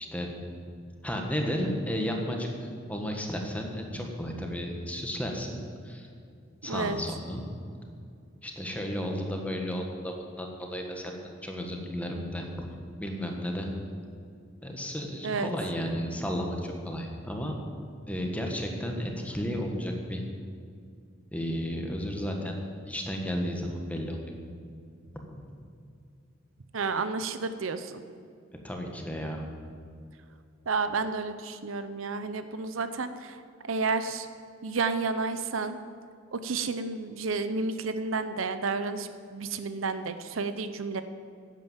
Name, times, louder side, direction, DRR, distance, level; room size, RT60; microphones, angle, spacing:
voice 1, 1.0-5.6 5.8-6.1 6.6-7.4 8.4-11.1 11.4-12.7 13.0-13.7 14.6-17.6 18.1-20.2 21.3-22.5 22.8-24.2 25.1-25.4 28.6-29.4, equal, 5° left, 1 dB, 1.5 m, -33 dB
voice 2, 6.7-7.0 15.2-15.5 26.7-28.0 30.7-33.4 33.6-34.3 34.6-35.8 36.3-41.0, right 4 dB, 80° right, 11 dB, 0.7 m, -31 dB
11.0 x 9.1 x 7.3 m, 2.4 s
head